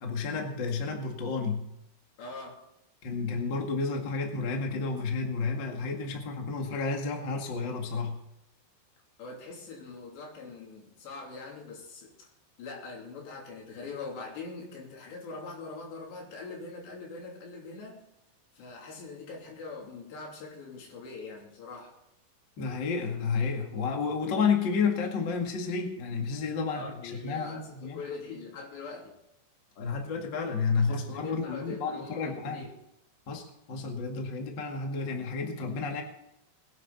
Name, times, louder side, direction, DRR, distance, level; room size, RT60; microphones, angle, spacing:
voice 1, 0.0-1.7 3.0-8.2 22.6-28.0 29.8-32.7 33.3-36.0, left 5 dB, 40° left, 2 dB, 1.8 m, -31 dB
voice 2, 2.2-2.6 9.2-12.3 12.6-18.0 18.6-21.9 26.7-29.1 30.9-32.7, left 4 dB, 80° left, -1 dB, 5.2 m, -43 dB
21.0 x 10.0 x 4.1 m, 0.83 s
omnidirectional pair, 4.9 m